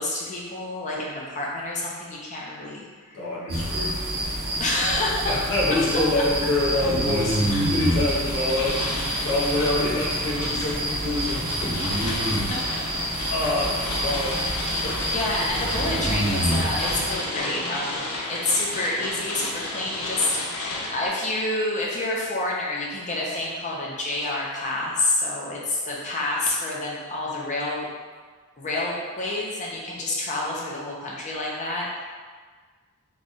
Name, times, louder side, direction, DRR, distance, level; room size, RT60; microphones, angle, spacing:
voice 1, 0.0-3.2 4.6-5.5 7.5-7.6 12.0-12.6 15.1-27.9 28.6-32.0, left 2 dB, 35° left, -4 dB, 0.7 m, -28 dB
voice 2, 3.1-4.0 5.3-11.8 13.3-14.4 14.8-15.0, left 2 dB, 60° left, -7 dB, 1.0 m, -26 dB
sound 1, 3.5-17.1, right 1 dB, 45° right, 0.8 m, -27 dB
sound 2, 6.1-21.1, left 2 dB, 75° left, 0.6 m, -33 dB
3.2 x 2.4 x 4.0 m, 1.5 s
head